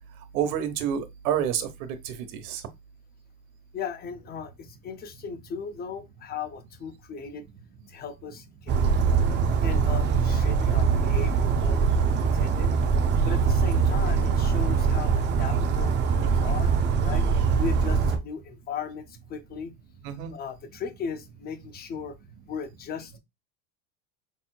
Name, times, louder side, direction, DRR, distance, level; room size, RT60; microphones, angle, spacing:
voice 1, 0.3-2.6 20.0-20.3, right 9 dB, 75° right, 1.1 m, -29 dB
voice 2, 3.7-7.5 7.9-8.8 9.6-12.8 13.2-16.7 17.0-17.3 17.6-19.7 20.3-22.2 22.5-23.2, left 6 dB, 25° left, 0.5 m, -37 dB
Bird vocalization bird call bird song, 8.7-18.2, right 5 dB, 25° right, 0.5 m, -23 dB
5.3 x 2.7 x 2.2 m
supercardioid pair, 130°, 43 cm